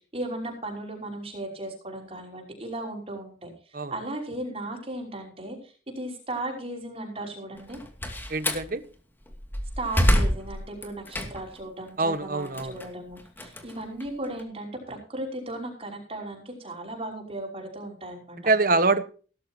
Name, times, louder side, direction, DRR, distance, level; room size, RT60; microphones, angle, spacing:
voice 1, 0.1-3.5 3.9-7.8 9.8-18.4, right 1 dB, 35° right, 0 dB, 5.5 m, -36 dB
Slam, 7.6-8.7 9.3-11.6 12.0-14.4, equal, 10° left, 2.5 m, -27 dB
voice 2, 8.3-8.8 12.0-12.7 18.5-19.0, right 3 dB, 50° right, 11 dB, 1.4 m, -24 dB
18.5 x 13.0 x 2.9 m, 0.39 s
head